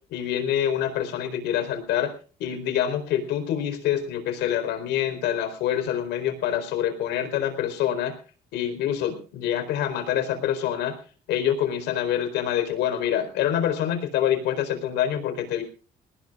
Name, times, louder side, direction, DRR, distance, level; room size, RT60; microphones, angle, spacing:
voice 1, 0.1-2.1 2.4-8.2 8.5-10.9 11.3-15.6, left 10 dB, 85° left, 8 dB, 4.3 m, -26 dB
21.5 x 19.0 x 2.4 m, 0.37 s
cardioid pair, 110°, 17 cm